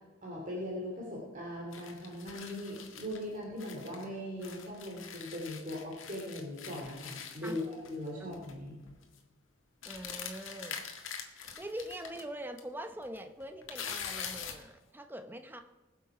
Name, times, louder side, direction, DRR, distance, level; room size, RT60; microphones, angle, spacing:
voice 1, 0.2-8.8, left 1 dB, 40° right, -3 dB, 2.6 m, -40 dB
sound 1, 1.7-4.0 4.4-8.1 8.3-8.6 8.9-9.2 9.8-12.2 12.6-12.7 13.0-14.7, left 7 dB, 80° left, 1.7 m, -44 dB
voice 2, 9.9-10.9 11.6-15.6, right 1 dB, 10° right, 7 dB, 0.8 m, -43 dB
20.5 x 7.2 x 4.9 m, 1.2 s
head